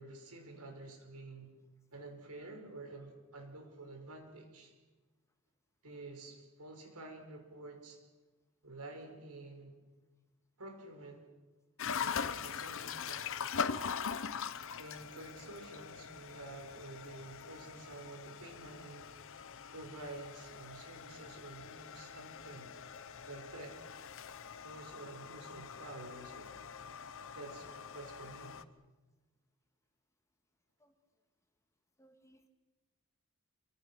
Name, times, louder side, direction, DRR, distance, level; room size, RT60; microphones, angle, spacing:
voice 1, 0.0-1.6 1.9-4.7 5.8-8.0 8.6-9.8 10.6-11.3 12.0-13.9 14.8-19.1 19.7-22.7 23.3-23.8 24.5-26.6 27.3-28.7, right 2 dB, 90° right, 4 dB, 5.4 m, -50 dB
sound 1, 11.8-28.6, left 6 dB, 60° left, 0.9 m, -42 dB
voice 2, 32.0-32.5, right 1 dB, 15° left, 6 dB, 2.0 m, -65 dB
28.0 x 24.5 x 6.2 m, 1.2 s
head